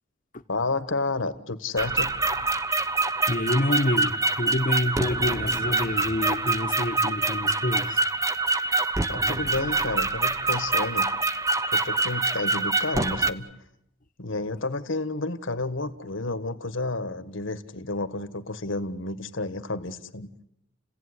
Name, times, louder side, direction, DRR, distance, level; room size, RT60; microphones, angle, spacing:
voice 1, 0.5-2.1 9.1-11.1 11.7-13.5 14.2-20.3, left 3 dB, 75° left, 12 dB, 1.6 m, -31 dB
sound 1, 1.8-13.3, right 3 dB, 15° right, 1.0 m, -25 dB
voice 2, 3.3-8.0, left 1 dB, 40° left, 6 dB, 1.2 m, -27 dB
30.0 x 17.0 x 9.8 m, 0.81 s
head